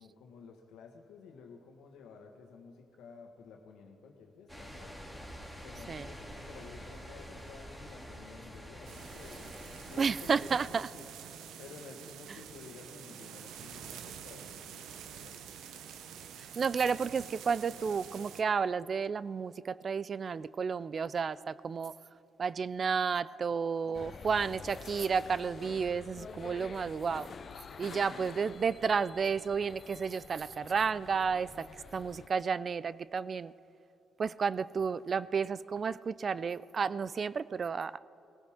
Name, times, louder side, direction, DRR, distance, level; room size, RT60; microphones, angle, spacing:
voice 1, 0.0-5.0 5.6-9.5 9.8-11.1 11.6-15.6 23.8-24.4, left 5 dB, 90° left, 3 dB, 1.5 m, -52 dB
sound 1, 4.5-10.6, equal, 10° right, 2.7 m, -47 dB
sound 2, 8.8-18.4, right 8 dB, 85° right, 0.7 m, -48 dB
voice 2, 10.0-10.9 12.3-12.4 16.6-21.9 22.4-27.3 27.8-31.7 31.9-33.5 34.2-38.0, right 6 dB, 45° right, 18 dB, 0.3 m, -32 dB
sound 3, 23.9-32.3, left 6 dB, 50° left, 0.6 m, -48 dB
19.5 x 16.0 x 3.7 m, 3.0 s
cardioid pair, 90°, 0 cm